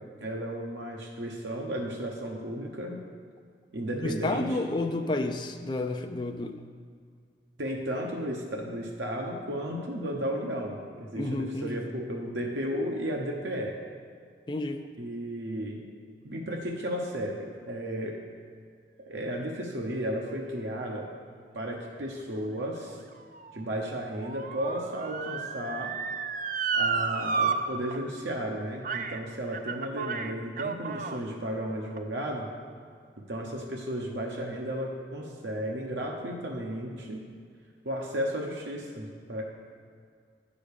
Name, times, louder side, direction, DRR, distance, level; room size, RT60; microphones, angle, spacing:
voice 1, 0.2-3.0 3.7-4.6 7.6-13.7 15.0-15.8 16.2-18.2 19.0-21.1 21.5-23.0 23.5-25.9 26.7-32.5 33.2-37.2 37.8-39.4, equal, 80° right, 0 dB, 1.0 m, -34 dB
voice 2, 3.9-6.6 11.2-11.9 14.5-14.9, left 2 dB, 25° left, 5 dB, 0.4 m, -31 dB
Motor vehicle (road) / Siren, 22.4-27.6 27.9-28.0 28.8-29.2 29.5-31.2 31.9-32.0, right 5 dB, 45° right, 0.4 m, -32 dB
9.8 x 5.1 x 6.6 m, 2.1 s
head